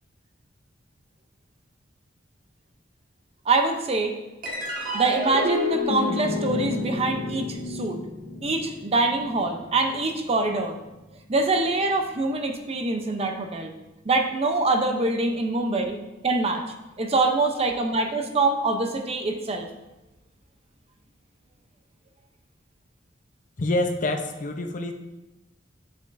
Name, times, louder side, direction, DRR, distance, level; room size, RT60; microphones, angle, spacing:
voice 1, 3.5-4.1 4.9-8.0 8.4-10.8 11.3-13.7 14.0-16.0 16.2-16.6 17.0-19.7, right 3 dB, 35° right, 5 dB, 0.6 m, -24 dB
sound 1, 4.4-11.1, left 2 dB, 50° right, 1.5 m, -30 dB
voice 2, 23.6-24.9, left 1 dB, 45° left, 5 dB, 0.6 m, -26 dB
7.6 x 7.0 x 2.6 m, 1.0 s
head